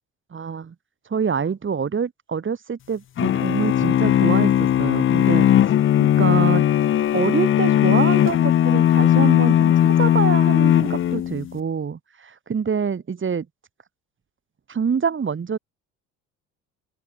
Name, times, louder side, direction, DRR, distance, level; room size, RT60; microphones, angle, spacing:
voice 1, 0.3-0.7 1.1-5.5 6.0-6.7 7.1-13.5 14.7-15.6, right 6 dB, 35° right, 3.3 m, -26 dB
sound 1, 3.2-11.5, left 11 dB, 35° left, 0.6 m, -18 dB
open air
hypercardioid pair, 65°, 36 cm